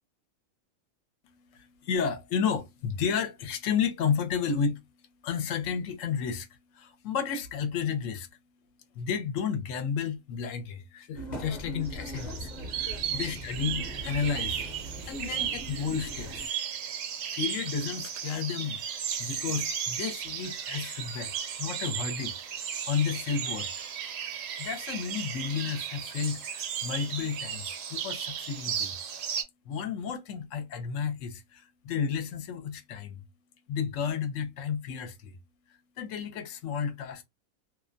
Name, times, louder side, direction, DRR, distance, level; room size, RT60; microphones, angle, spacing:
voice 1, 1.2-8.3 8.9-14.7 15.0-16.5 17.3-22.3 22.8-23.7 24.6-28.9 29.7-33.2 33.7-35.4 36.0-37.2, left 6 dB, 70° left, 0.9 m, -32 dB
sound 1, 11.1-16.5, equal, 40° left, 0.7 m, -40 dB
sound 2, 11.9-29.4, right 8 dB, 70° right, 0.9 m, -35 dB
2.4 x 2.1 x 2.4 m
omnidirectional pair, 1.4 m